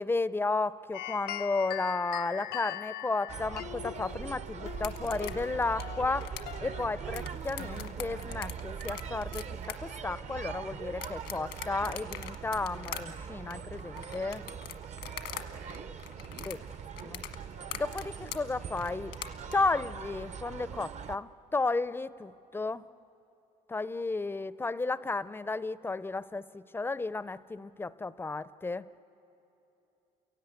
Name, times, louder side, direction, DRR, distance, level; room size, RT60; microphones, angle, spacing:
voice 1, 0.0-6.3 6.6-14.4 16.5-16.6 17.0-17.2 17.7-19.2 19.5-22.8 23.7-28.8, left 3 dB, 15° left, 16 dB, 0.4 m, -33 dB
sound 1, 0.9-8.5, left 13 dB, 65° left, 0.5 m, -42 dB
sound 2, 3.3-21.2, right 7 dB, 45° right, 0.6 m, -41 dB
sound 3, 4.7-15.4 15.7-19.5, left 13 dB, 90° left, 1.4 m, -42 dB
voice 2, 15.3-17.1, right 5 dB, 65° right, 6 dB, 1.8 m, -52 dB
29.0 x 17.5 x 8.1 m, 3.0 s
cardioid pair, 110°, 17 cm